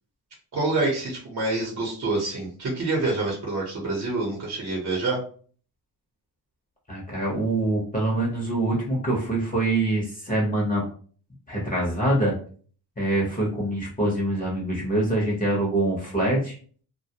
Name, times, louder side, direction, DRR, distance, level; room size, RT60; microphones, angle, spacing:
voice 1, 0.5-5.2, right 2 dB, 45° right, -2 dB, 0.9 m, -27 dB
voice 2, 6.9-10.8 11.5-12.3 13.0-16.6, right 1 dB, 20° left, -3 dB, 0.8 m, -24 dB
2.2 x 2.1 x 2.8 m, 0.44 s
cardioid pair, 95°, 40 cm